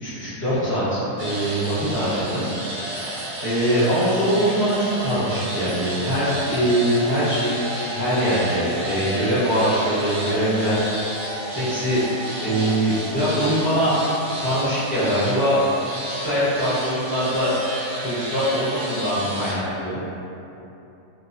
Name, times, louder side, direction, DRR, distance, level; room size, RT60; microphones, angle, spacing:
voice 1, 0.0-3.1 3.4-10.9 11.5-12.0 12.4-14.0 14.4-15.6 16.0-17.5 18.0-20.2, equal, 10° left, -13 dB, 0.7 m, -23 dB
sound 1, 1.2-19.5, right 1 dB, 65° right, 0.5 m, -32 dB
sound 2, 6.1-13.5, equal, 45° left, 0.6 m, -37 dB
2.9 x 2.0 x 2.5 m, 2.9 s
omnidirectional pair, 1.7 m